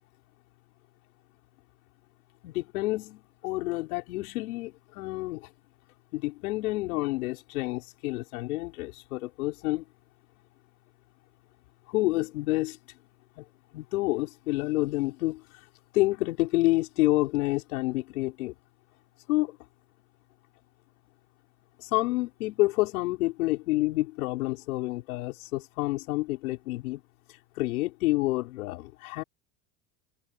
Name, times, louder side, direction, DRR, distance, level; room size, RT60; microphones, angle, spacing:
voice 1, 2.4-5.5 6.1-9.8 11.9-12.8 13.4-13.5 13.7-15.4 15.9-18.5 19.3-19.6 21.8-27.0 27.6-29.2, left 20 dB, 80° left, 5.7 m, -28 dB
hypercardioid pair, 90°, 43 cm